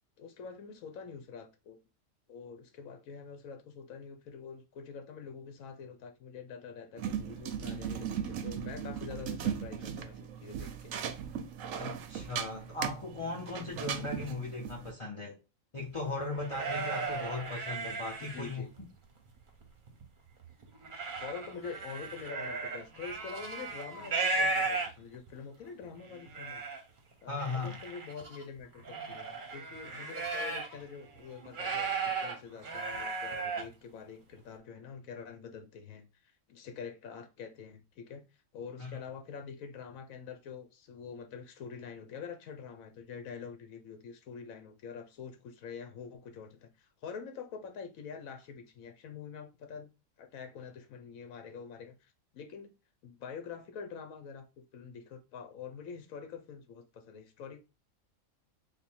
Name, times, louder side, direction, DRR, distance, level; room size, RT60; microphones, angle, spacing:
voice 1, 0.2-1.8 2.3-10.9 18.3-18.7 21.1-26.6 27.2-38.2 38.5-49.9 50.2-52.7 53.0-57.7, left 6 dB, 75° left, 1.1 m, -46 dB
sound 1, 7.0-14.9, right 8 dB, 75° right, 0.9 m, -38 dB
voice 2, 11.7-15.4 15.7-18.6 27.3-27.8 38.8-39.0, left 3 dB, 40° left, 0.4 m, -38 dB
sound 2, 16.0-18.8 19.3-20.0 20.4-25.3 25.8-25.9 26.1-26.8 27.4-30.8 31.1-33.7, right 4 dB, 45° right, 0.8 m, -36 dB
3.4 x 2.1 x 4.3 m
omnidirectional pair, 1.5 m